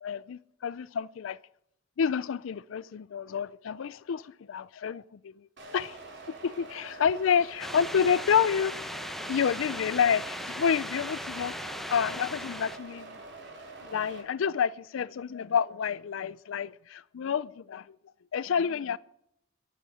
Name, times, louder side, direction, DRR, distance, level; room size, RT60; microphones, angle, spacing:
voice 1, 0.0-1.4 2.0-5.5 5.7-6.0 6.4-8.8 9.3-11.6 11.9-13.2 13.8-18.0 18.3-19.0, left 7 dB, 80° left, 0.4 m, -29 dB
sound 1, 5.6-14.2, right 3 dB, 65° right, 4.1 m, -46 dB
sound 2, 7.6-12.8, equal, ahead, 0.8 m, -38 dB
11.5 x 8.3 x 9.7 m
head